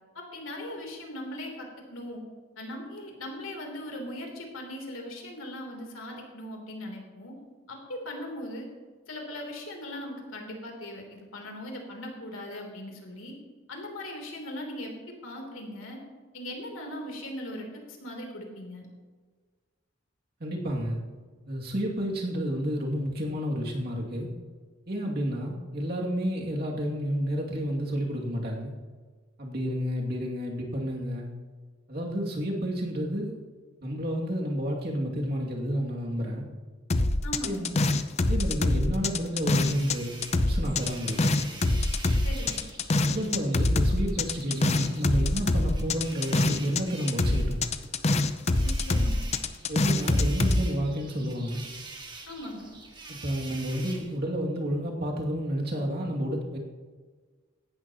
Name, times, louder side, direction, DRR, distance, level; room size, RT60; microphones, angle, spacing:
voice 1, 0.2-2.2 2.6-7.4 7.7-8.7 9.1-13.4 13.7-16.0 16.3-18.9 37.2-37.7 42.2-42.6 48.6-49.4 52.3-52.7, left 1 dB, 90° left, 1 dB, 3.4 m, -39 dB
voice 2, 20.4-21.0 21.5-24.3 24.9-28.7 29.4-31.3 31.9-33.4 33.8-36.4 37.4-37.7 38.3-41.3 43.0-47.6 49.7-51.6 53.1-56.6, equal, 50° right, -2 dB, 2.5 m, -30 dB
sound 1, 36.9-40.0 40.2-46.8 47.1-50.6, left 2 dB, 30° left, 0.6 m, -25 dB
sound 2, 39.4-54.2, right 3 dB, 20° right, 1.8 m, -46 dB
17.0 x 12.5 x 3.0 m, 1.5 s
head